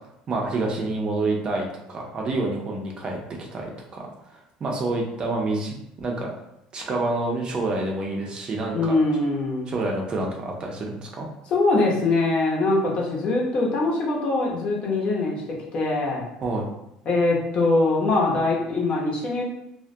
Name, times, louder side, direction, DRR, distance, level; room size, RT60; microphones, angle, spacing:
voice 1, 0.3-6.3 6.7-9.0 9.7-11.3 16.4-16.7, right 2 dB, 35° right, 0 dB, 0.5 m, -28 dB
voice 2, 8.7-9.7 11.5-15.4 15.7-16.2 17.1-19.4, left 2 dB, 45° left, -2 dB, 0.7 m, -22 dB
2.2 x 2.1 x 2.6 m, 0.82 s
supercardioid pair, 100°, 3 cm